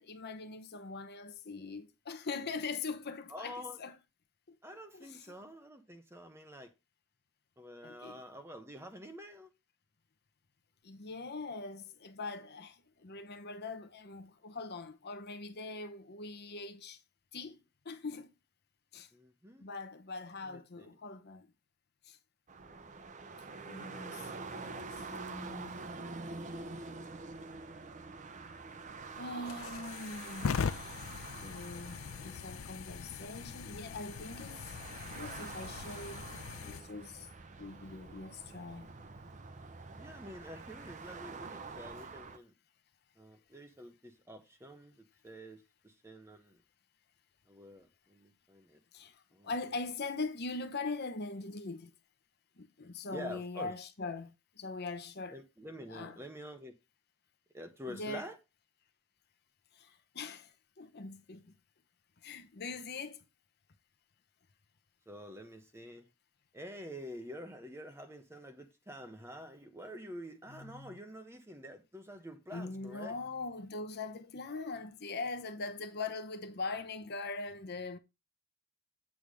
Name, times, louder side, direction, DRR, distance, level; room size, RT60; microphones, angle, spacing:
voice 1, 0.0-4.0 4.5-4.6 4.9-5.2 7.8-8.2 10.8-17.0 17.3-18.3 18.9-19.1 19.6-21.5 22.0-22.2 23.6-25.8 29.2-34.8 35.1-36.3 36.6-37.3 37.6-38.9 48.9-51.9 52.6-55.4 55.9-56.2 57.9-58.3 59.7-61.5 62.2-63.3 70.5-71.0 72.5-78.0, left 3 dB, 45° left, 0.8 m, -42 dB
voice 2, 3.3-3.8 4.6-6.7 7.6-9.5 19.1-19.7 20.4-21.0 40.0-42.5 43.2-46.6 47.5-48.8 49.3-49.5 53.1-53.7 55.3-56.7 57.5-58.4 65.1-66.1 66.5-73.2, equal, 10° right, 1.0 m, -48 dB
sound 1, 22.5-42.4, right 4 dB, 35° right, 0.7 m, -46 dB
sound 2, 29.2-36.8, left 6 dB, 60° left, 0.4 m, -41 dB
8.5 x 3.5 x 6.2 m
head